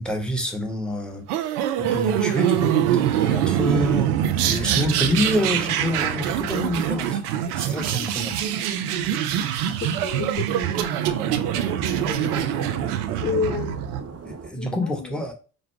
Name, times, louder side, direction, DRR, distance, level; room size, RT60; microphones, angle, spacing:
voice 1, 0.0-7.2 7.6-8.4 11.2-11.4 14.2-15.3, left 1 dB, ahead, 1.3 m, -28 dB
sound 1, 1.3-14.0, right 10 dB, 80° right, 0.5 m, -24 dB
sound 2, 7.2-14.5, right 6 dB, 35° right, 0.8 m, -38 dB
voice 2, 9.8-10.8 11.9-12.7 13.2-13.8 14.6-15.2, left 6 dB, 20° left, 0.6 m, -31 dB
5.0 x 2.2 x 3.5 m
figure-of-eight pair, 45°, 45 cm